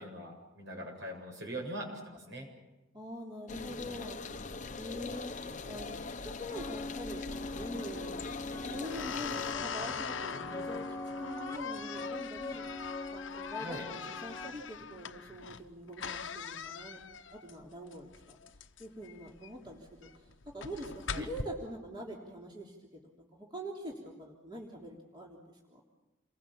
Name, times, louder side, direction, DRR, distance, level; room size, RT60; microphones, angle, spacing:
voice 1, 0.0-2.5 13.6-13.8 21.1-21.3, right 1 dB, 65° right, 2 dB, 7.8 m, -42 dB
voice 2, 2.9-4.2 4.8-5.4 5.6-12.6 13.1-17.0 17.3-18.4 18.8-25.8, equal, 25° right, -2 dB, 3.4 m, -44 dB
sound 1, 3.5-9.5, left 4 dB, 40° left, 0.9 m, -42 dB
sound 2, 6.5-14.5, left 3 dB, 15° left, 1.4 m, -42 dB
sound 3, 7.2-21.4, left 6 dB, 80° left, 1.0 m, -42 dB
29.0 x 22.0 x 7.2 m, 1.0 s
head